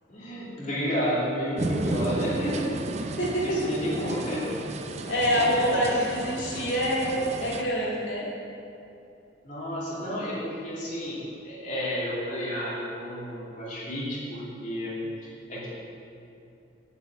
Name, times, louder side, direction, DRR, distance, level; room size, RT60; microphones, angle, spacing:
voice 1, 0.1-3.1 3.4-4.6 5.3-5.8 9.4-11.2 11.4-14.9 15.5-15.7, equal, 40° left, -8 dB, 2.7 m, -31 dB
sound 1, 1.6-7.6, right 2 dB, 35° right, 0.5 m, -33 dB
voice 2, 3.2-3.7 5.1-8.2, equal, 80° left, -6 dB, 2.5 m, -26 dB
8.6 x 6.2 x 7.7 m, 2.7 s
head